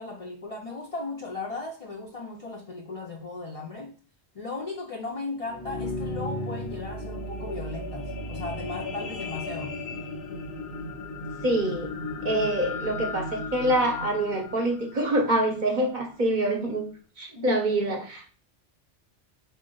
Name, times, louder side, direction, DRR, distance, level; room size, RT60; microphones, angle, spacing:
voice 1, 0.0-4.0 4.3-9.7 17.4-17.9, left 3 dB, 45° left, 0 dB, 0.5 m, -36 dB
sound 1, 5.3-15.8 16.4-16.5, left 2 dB, 75° left, 0.9 m, -35 dB
voice 2, 11.4-11.9 12.2-16.9 17.2-18.2, right 1 dB, 50° right, 3 dB, 0.9 m, -25 dB
4.3 x 2.6 x 3.7 m, 0.38 s
omnidirectional pair, 1.1 m